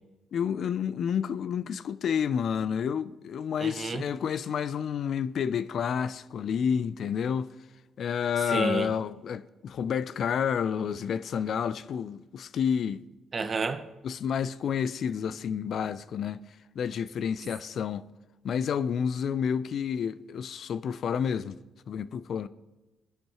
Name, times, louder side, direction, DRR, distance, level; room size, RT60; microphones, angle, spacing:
voice 1, 0.3-7.5 8.0-13.0 14.0-16.5 16.7-18.1 18.4-21.6 21.9-22.5, left 7 dB, 60° left, 0.5 m, -30 dB
voice 2, 3.6-4.0 8.5-8.9 13.3-13.9, right 4 dB, 40° right, 0.8 m, -30 dB
21.5 x 10.0 x 3.1 m
cardioid pair, 90°, 0 cm